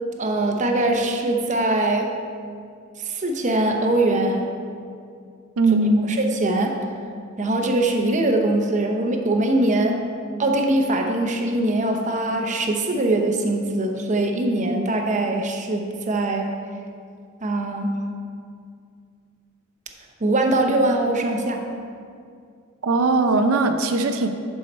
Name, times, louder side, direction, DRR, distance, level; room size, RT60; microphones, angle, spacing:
voice 1, 0.2-2.1 3.0-4.5 5.8-6.7 7.4-10.0 10.4-16.5 17.4-18.0 20.2-21.6, right 2 dB, 35° right, 3 dB, 0.7 m, -22 dB
voice 2, 5.6-6.1 22.8-24.3, right 2 dB, 90° right, 6 dB, 0.5 m, -19 dB
11.0 x 4.7 x 4.3 m, 2.3 s
head